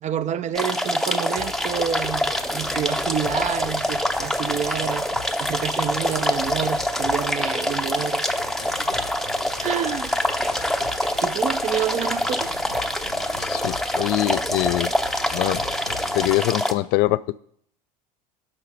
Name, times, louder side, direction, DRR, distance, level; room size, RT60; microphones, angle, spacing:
voice 1, 0.0-5.1 5.4-8.3 9.6-10.2 11.2-12.5, right 9 dB, 35° right, 0.6 m, -28 dB
sound 1, 0.6-16.7, left 1 dB, ahead, 0.7 m, -25 dB
sound 2, 1.3-16.5, left 6 dB, 90° left, 1.8 m, -41 dB
sound 3, 1.4-15.9, right 5 dB, 75° right, 3.8 m, -46 dB
voice 2, 13.4-14.9 15.3-15.6 16.1-17.4, left 18 dB, 55° left, 0.4 m, -23 dB
12.0 x 5.7 x 4.3 m
hypercardioid pair, 80°, 20 cm